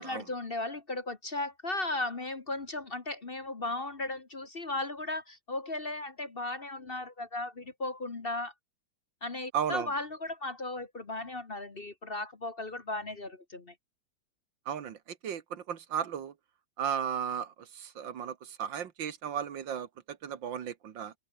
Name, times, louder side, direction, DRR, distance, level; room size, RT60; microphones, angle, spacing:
voice 1, 0.0-8.5 9.2-13.7, left 2 dB, 30° left, 1.5 m, -36 dB
voice 2, 9.5-9.9 14.7-16.3 16.8-21.1, right 8 dB, 75° right, 2.1 m, -35 dB
open air
omnidirectional pair, 2.1 m